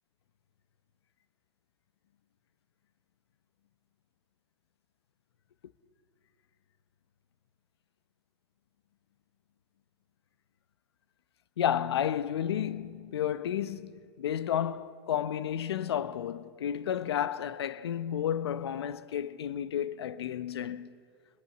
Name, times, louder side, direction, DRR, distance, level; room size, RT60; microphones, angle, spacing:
voice 1, 11.6-20.9, left 9 dB, 85° left, 0.9 m, -32 dB
28.0 x 21.5 x 7.9 m
hypercardioid pair, 105°, 13 cm